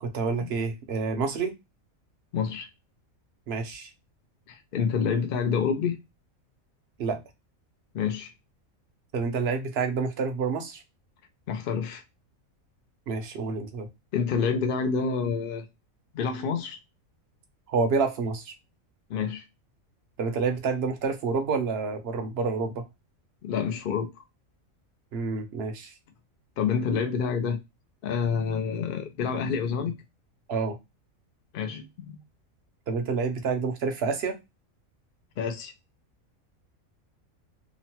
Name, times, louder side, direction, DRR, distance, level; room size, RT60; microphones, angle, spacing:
voice 1, 0.0-1.5 3.5-3.9 7.0-7.2 9.1-10.8 13.1-13.9 17.7-18.5 20.2-22.8 25.1-25.9 30.5-30.8 32.9-34.4, right 4 dB, 60° right, 0.7 m, -28 dB
voice 2, 2.3-2.7 4.5-6.0 7.9-8.3 11.5-12.0 14.1-15.6 16.1-16.8 19.1-19.4 23.4-24.2 26.6-27.6 28.0-29.9 31.5-32.2 35.4-35.7, left 6 dB, 65° left, 0.5 m, -28 dB
3.0 x 2.0 x 2.8 m
omnidirectional pair, 1.4 m